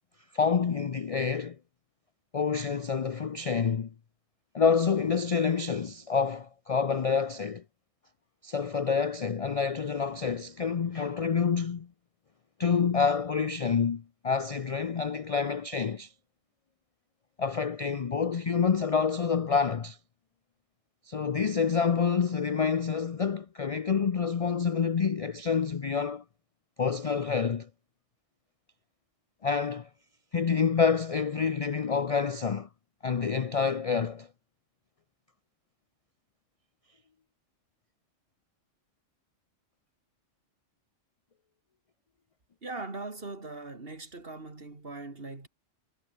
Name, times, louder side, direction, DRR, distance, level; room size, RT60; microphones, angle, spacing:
voice 1, 0.3-1.6 2.3-3.9 4.5-7.6 8.4-11.9 12.6-16.1 17.4-20.0 21.1-26.2 26.8-27.7 29.4-29.9 30.3-32.7 33.0-34.3, left 6 dB, 45° left, 0.5 m, -27 dB
voice 2, 42.6-45.5, right 3 dB, 45° right, 3.0 m, -40 dB
omnidirectional pair, 1.3 m